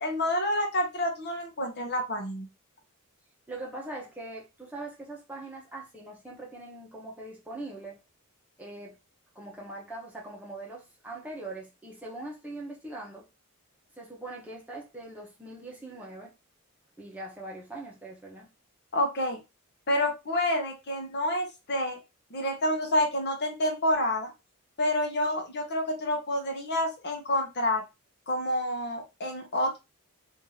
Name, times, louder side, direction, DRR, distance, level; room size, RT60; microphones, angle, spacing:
voice 1, 0.0-2.5 18.9-19.4 19.9-22.0 22.3-24.3 24.8-27.8 28.3-29.8, left 1 dB, 50° left, 1.0 m, -28 dB
voice 2, 3.5-8.0 8.6-9.0 9.3-13.2 14.0-16.3 17.0-18.5, right 2 dB, 5° right, 0.9 m, -41 dB
2.9 x 2.6 x 3.9 m
head